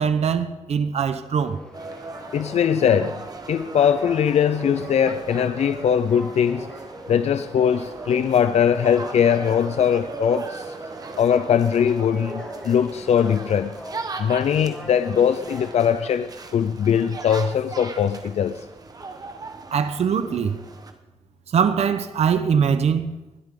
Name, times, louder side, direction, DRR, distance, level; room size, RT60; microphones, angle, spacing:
voice 1, 0.0-1.6 19.7-20.6 21.5-23.2, right 7 dB, 75° right, 0.9 m, -22 dB
sound 1, 1.4-15.9, left 1 dB, 5° left, 3.3 m, -42 dB
sound 2, 1.7-20.9, right 4 dB, 35° right, 1.2 m, -38 dB
voice 2, 2.3-3.2 3.5-6.7 7.1-10.7 11.2-13.8 14.2-18.6, left 8 dB, 80° left, 0.5 m, -21 dB
20.5 x 12.5 x 3.8 m
wide cardioid pair, 125°, 11 cm